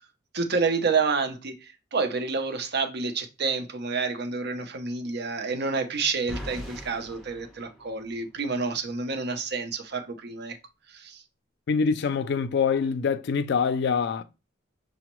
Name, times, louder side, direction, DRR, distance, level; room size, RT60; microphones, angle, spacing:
voice 1, 0.3-10.6 10.9-11.2, right 4 dB, 55° right, 0.6 m, -29 dB
sound 1, 6.3-8.4, equal, 5° left, 0.8 m, -41 dB
voice 2, 11.7-14.2, left 5 dB, 60° left, 0.3 m, -25 dB
5.9 x 2.0 x 3.0 m
head